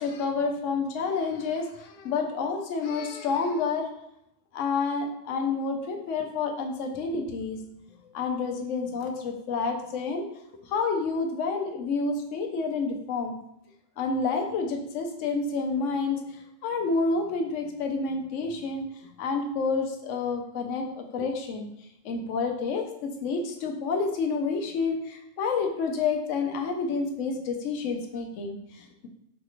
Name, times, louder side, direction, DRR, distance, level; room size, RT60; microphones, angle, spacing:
voice 1, 0.0-3.9 4.5-7.6 8.1-10.3 10.6-13.4 14.0-16.2 16.6-18.9 19.2-21.7 22.0-29.1, left 4 dB, 80° left, 3 dB, 1.0 m, -29 dB
4.9 x 2.4 x 2.9 m, 0.80 s
omnidirectional pair, 1.3 m